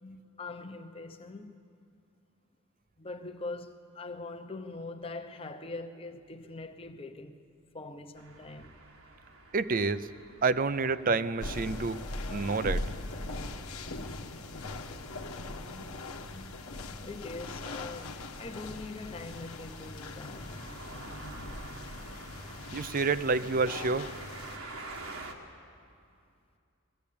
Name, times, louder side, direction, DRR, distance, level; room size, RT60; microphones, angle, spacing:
voice 1, 0.0-1.6 3.0-7.4 7.7-8.8 15.7-16.7 17.0-20.5 20.7-20.8 22.3-22.4, left 3 dB, 25° left, 0.9 m, -43 dB
sound 1, 8.2-25.3, right 2 dB, 80° right, 1.8 m, -50 dB
voice 2, 9.5-10.1 10.4-12.0 12.3-12.8 22.7-24.1, right 4 dB, 40° right, 0.5 m, -28 dB
sound 2, 11.4-24.6, left 2 dB, 90° left, 1.2 m, -40 dB
20.5 x 15.5 x 8.6 m
head